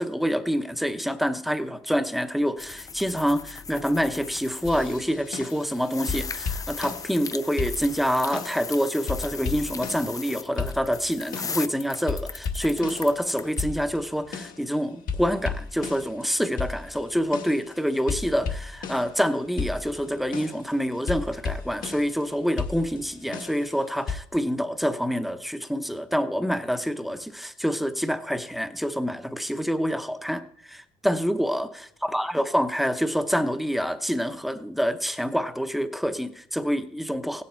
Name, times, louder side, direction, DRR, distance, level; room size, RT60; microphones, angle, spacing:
voice 1, 0.0-31.7 32.0-37.4, equal, ahead, 9 dB, 0.8 m, -27 dB
sound 1, 2.6-5.0 5.2-13.6, left 5 dB, 20° left, 0.4 m, -38 dB
sound 2, 4.6-5.8 6.1-7.3 7.6-8.7 9.1-10.3 10.6-11.7 12.1-14.7 15.1-19.3 19.6-22.2 22.6-24.2, left 5 dB, 55° left, 1.3 m, -34 dB
16.5 x 10.0 x 4.5 m, 0.72 s
cardioid pair, 110°, 17 cm